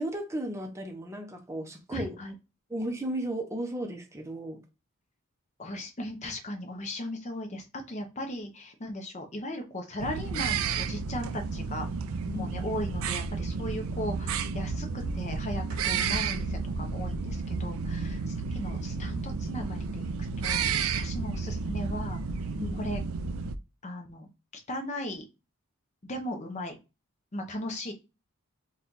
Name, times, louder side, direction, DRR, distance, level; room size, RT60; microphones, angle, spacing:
voice 1, 0.0-2.2 2.7-4.6 12.3-12.5 22.6-22.8, right 1 dB, 15° right, 0.6 m, -34 dB
voice 2, 1.9-2.4 5.6-11.9 12.3-14.9 15.1-20.1 20.4-22.2 22.8-23.0 23.8-24.3 24.7-25.2 26.0-26.8 27.3-27.9, left 1 dB, 30° left, 0.7 m, -37 dB
sound 1, 10.0-23.6, right 5 dB, 65° right, 0.4 m, -32 dB
4.2 x 2.3 x 3.8 m
head